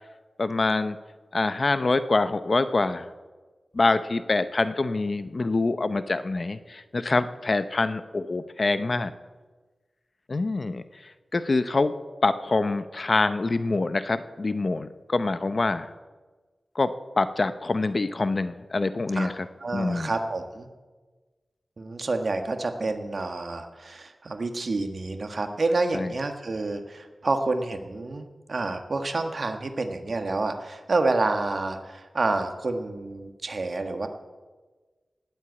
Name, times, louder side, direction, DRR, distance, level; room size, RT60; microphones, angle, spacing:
voice 1, 0.4-1.0 1.3-3.1 3.7-9.1 10.3-10.8 11.3-11.9 12.2-15.9 16.7-19.5 19.7-20.1 25.9-26.1, left 3 dB, 45° left, 12 dB, 0.8 m, -25 dB
voice 2, 19.6-20.7 21.8-34.1, right 3 dB, 55° right, 6 dB, 1.6 m, -28 dB
18.5 x 8.1 x 8.5 m, 1.3 s
wide cardioid pair, 110°, 0 cm